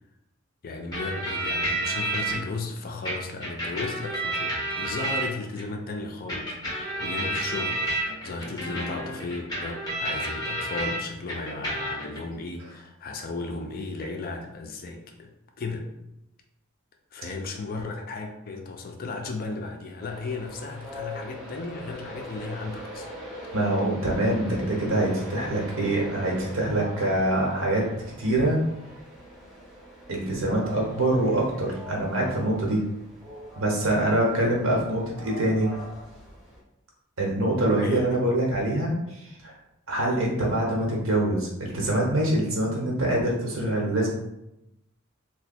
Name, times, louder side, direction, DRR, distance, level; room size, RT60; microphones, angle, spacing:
voice 1, 0.6-15.3 15.6-15.9 17.1-23.1 23.4-23.5 37.8-38.0, left 3 dB, 45° left, 3 dB, 0.4 m, -35 dB
sound 1, 0.9-2.4 3.1-5.6 6.3-11.0 11.3-12.2, right 1 dB, 20° left, 1.3 m, -30 dB
Train, 20.0-36.6, equal, ahead, 0.9 m, -42 dB
voice 2, 23.5-27.9 28.2-28.6 30.1-32.8 33.6-35.7 37.2-39.6 39.9-44.1, right 1 dB, 70° right, -2 dB, 1.0 m, -25 dB
3.0 x 2.2 x 4.2 m, 0.88 s
head